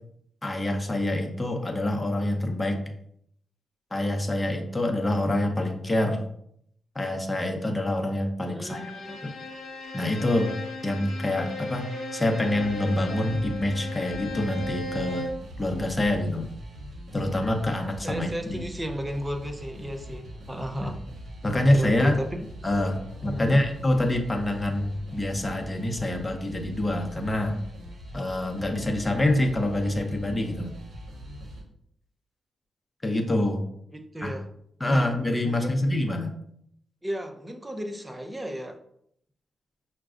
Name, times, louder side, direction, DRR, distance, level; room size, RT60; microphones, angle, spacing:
voice 1, 0.4-2.8 3.9-6.2 6.9-8.9 9.2-9.3 9.9-10.5 10.8-15.3 15.6-16.5 17.1-18.6 20.8-20.9 21.4-22.2 22.6-27.6 28.1-30.8 33.0-33.6 34.2-34.3 34.8-36.3, left 1 dB, 25° left, 4 dB, 0.8 m, -26 dB
voice 2, 8.5-9.2 18.0-21.0 21.5-22.4 23.3-23.6 33.9-34.4 34.9-35.1 35.4-35.9 37.0-38.8, equal, 20° right, 5 dB, 0.6 m, -34 dB
Bowed string instrument, 8.6-15.5, left 2 dB, 75° left, 0.8 m, -36 dB
sound 1, 12.5-31.6, equal, 70° right, 0.9 m, -42 dB
6.0 x 2.2 x 2.5 m, 0.71 s
supercardioid pair, 45°, 0 cm